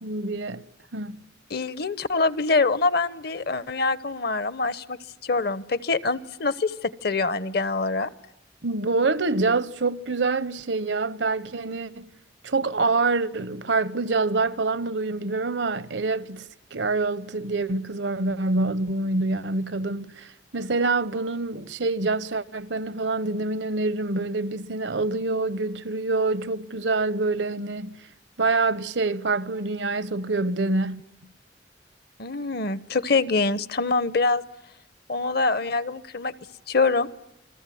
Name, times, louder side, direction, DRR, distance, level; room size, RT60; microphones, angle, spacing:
voice 1, 0.0-0.6 0.9-1.2 8.6-12.0 12.4-28.1 28.4-31.0, right 3 dB, 75° right, 1.0 m, -26 dB
voice 2, 1.5-5.0 5.2-8.1 32.2-34.4 35.1-36.3 36.7-37.1, left 3 dB, 60° left, 1.0 m, -24 dB
29.5 x 21.5 x 9.3 m
head